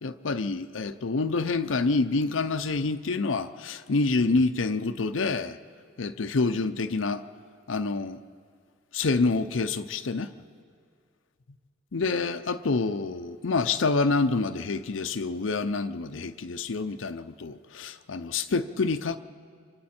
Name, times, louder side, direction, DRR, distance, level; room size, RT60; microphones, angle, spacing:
voice 1, 0.0-5.6 6.0-7.2 7.7-8.2 8.9-10.3 11.9-19.2, left 3 dB, 85° left, 0.6 m, -27 dB
30.0 x 25.5 x 4.4 m
head